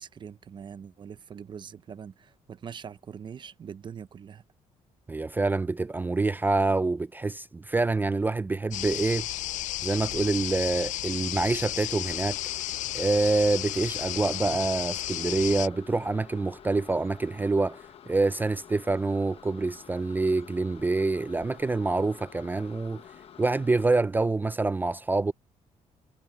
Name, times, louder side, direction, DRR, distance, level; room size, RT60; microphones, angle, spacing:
voice 1, 0.0-4.4, right 7 dB, 35° right, 0.7 m, -43 dB
voice 2, 5.1-9.3 9.8-12.4 12.9-23.0 23.4-25.3, right 3 dB, 15° right, 0.4 m, -26 dB
sound 1, 8.7-15.7, left 15 dB, 75° left, 0.4 m, -33 dB
sound 2, 12.0-23.9, left 9 dB, 50° left, 1.2 m, -50 dB
cardioid pair, 140°, 13 cm